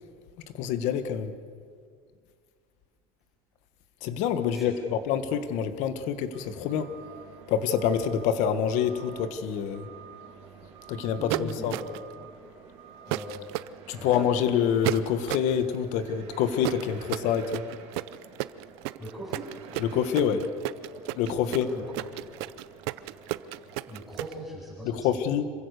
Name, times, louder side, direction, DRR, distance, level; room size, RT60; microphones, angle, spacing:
voice 1, 0.6-1.3 4.0-6.9 7.5-9.9 10.9-11.8 13.9-17.6 19.8-20.5 21.1-21.7 24.8-25.5, left 8 dB, 60° left, 11 dB, 1.5 m, -26 dB
voice 2, 4.5-5.0 11.2-11.8 13.1-13.4 14.0-14.1 19.0-19.5 21.6-21.8 23.9-25.1, right 1 dB, ahead, -6 dB, 5.4 m, -39 dB
sound 1, 6.3-24.0, right 6 dB, 50° right, 3.2 m, -49 dB
sound 2, 11.3-12.1 13.1-13.7 14.8-15.5 16.6-24.3, right 19 dB, 80° right, 0.6 m, -32 dB
26.5 x 16.0 x 6.7 m, 2.1 s
cardioid pair, 145°, 14 cm